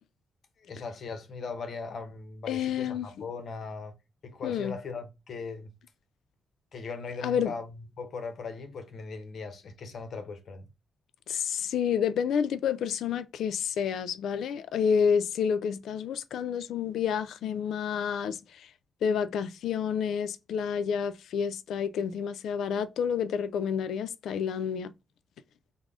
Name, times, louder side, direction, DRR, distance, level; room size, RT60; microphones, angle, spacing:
voice 1, 0.6-3.9 4.2-5.7 6.7-10.7, left 4 dB, 55° left, 0.7 m, -39 dB
voice 2, 2.5-3.1 4.4-4.7 7.2-7.5 11.3-18.7 19.0-24.9, left 7 dB, 85° left, 0.3 m, -29 dB
3.6 x 2.0 x 3.5 m
wide cardioid pair, 145°, 0 cm